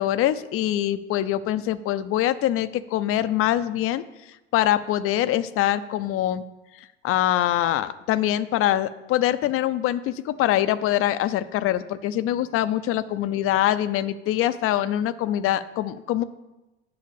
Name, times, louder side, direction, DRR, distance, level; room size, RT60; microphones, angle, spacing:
voice 1, 0.0-4.0 4.5-6.4 7.0-16.2, left 12 dB, 45° left, 14 dB, 0.6 m, -24 dB
7.7 x 6.5 x 7.0 m, 1.0 s
hypercardioid pair, 75°, 31 cm